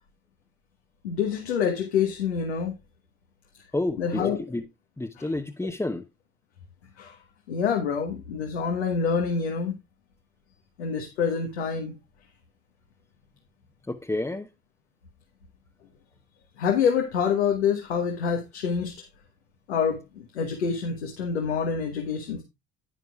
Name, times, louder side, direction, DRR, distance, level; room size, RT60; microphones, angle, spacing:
voice 1, 1.0-2.7 4.0-4.4 5.2-5.3 7.0-7.1 7.5-9.7 10.8-11.9 16.6-18.9 19.7-20.0 20.3-22.4, left 6 dB, 90° left, 1.4 m, -26 dB
voice 2, 3.7-4.6 5.0-6.0 13.9-14.5, left 2 dB, 10° left, 0.9 m, -30 dB
11.0 x 9.3 x 2.4 m
hypercardioid pair, 60°, 32 cm